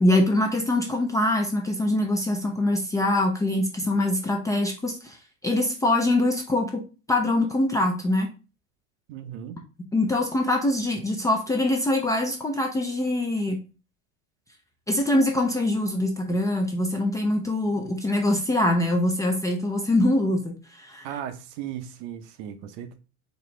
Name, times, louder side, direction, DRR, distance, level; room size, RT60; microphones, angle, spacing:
voice 1, 0.0-5.2 5.4-6.8 7.1-8.3 9.9-13.6 14.9-21.1, left 1 dB, 10° left, 0.3 m, -23 dB
voice 2, 9.1-9.6 21.0-23.0, right 10 dB, 60° right, 0.6 m, -36 dB
4.2 x 2.8 x 3.1 m
supercardioid pair, 130°, 34 cm